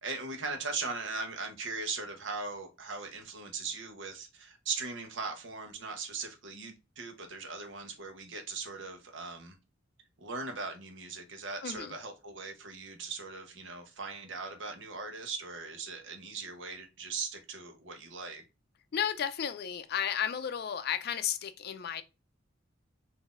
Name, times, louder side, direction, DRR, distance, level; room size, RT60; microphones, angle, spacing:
voice 1, 0.0-9.6 10.2-18.4, right 4 dB, 75° right, 0.9 m, -39 dB
voice 2, 11.6-11.9 18.9-22.0, left 9 dB, 55° left, 0.4 m, -33 dB
3.8 x 2.6 x 2.4 m
head